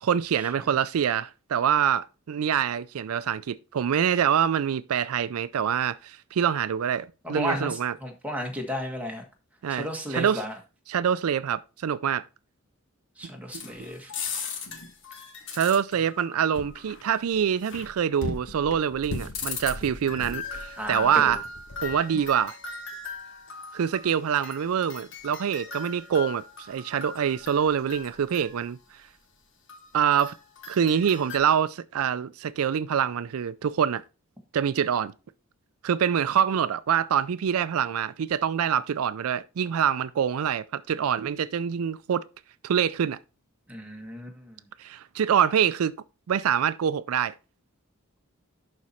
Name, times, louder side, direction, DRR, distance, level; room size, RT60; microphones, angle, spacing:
voice 1, 0.0-7.9 9.6-10.4 10.9-12.2 13.5-13.6 15.5-21.4 21.8-22.6 23.7-28.8 29.9-30.4 30.7-34.0 34.5-35.1 35.8-42.2 42.6-43.2 44.8-45.9 46.3-47.3, right 8 dB, 80° right, 0.4 m, -25 dB
voice 2, 7.2-9.2 9.7-10.6 13.2-14.1 20.8-21.3 43.7-44.6, equal, 5° right, 1.4 m, -33 dB
sound 1, 13.5-28.6 29.7-31.4, left 4 dB, 55° left, 1.4 m, -38 dB
11.0 x 4.2 x 4.2 m
head